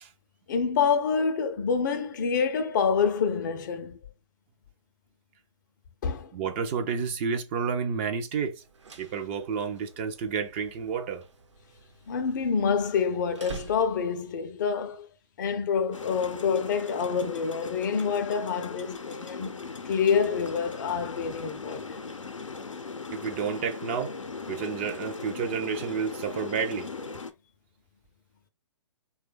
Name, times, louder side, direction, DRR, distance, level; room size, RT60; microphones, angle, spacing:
voice 1, 0.5-4.0 6.0-6.3 12.1-15.1 15.4-22.0, left 6 dB, 40° left, 0.4 m, -27 dB
voice 2, 6.3-8.6 9.0-11.2 23.1-24.1 24.5-26.9, right 6 dB, 25° right, 0.4 m, -30 dB
sound 1, 8.6-14.3, right 4 dB, 70° right, 0.9 m, -48 dB
sound 2, 15.9-27.3, left 4 dB, 90° left, 0.5 m, -39 dB
3.2 x 2.2 x 3.2 m
figure-of-eight pair, 130°, 16 cm